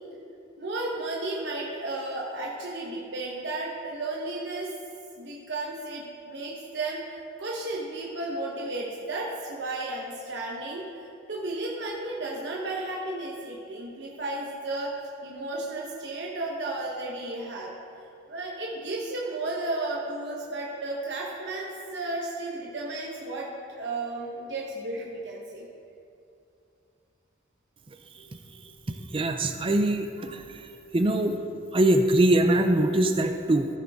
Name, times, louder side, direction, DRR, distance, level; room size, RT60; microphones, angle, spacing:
voice 1, 0.6-4.7 5.2-14.9 15.2-17.7 18.3-25.7, right 2 dB, 60° right, -3 dB, 1.1 m, -33 dB
voice 2, 28.9-30.4 30.9-31.4 31.7-33.7, right 1 dB, 25° right, 6 dB, 0.5 m, -22 dB
14.0 x 8.4 x 3.6 m, 2.7 s
head